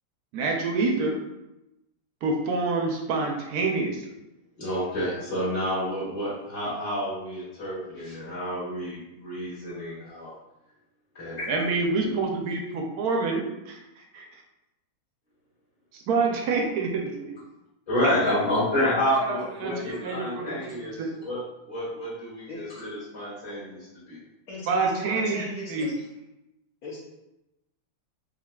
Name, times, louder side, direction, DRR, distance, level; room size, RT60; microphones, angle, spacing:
voice 1, 0.3-1.2 2.2-4.1 11.5-14.3 15.9-16.9 18.0-18.3 19.3-21.1 24.7-25.9, right 3 dB, 70° right, 1 dB, 1.0 m, -27 dB
voice 2, 4.6-10.3 11.1-11.6 12.0-12.1 17.9-20.9 21.2-21.4 21.7-24.2, left 1 dB, 25° left, -12 dB, 1.4 m, -29 dB
voice 3, 18.0-19.0 19.7-20.0 20.4-20.6 22.5-22.7 24.5-25.9 26.8-27.0, left 2 dB, 60° left, -7 dB, 1.2 m, -39 dB
4.7 x 2.8 x 2.2 m, 0.93 s
omnidirectional pair, 2.0 m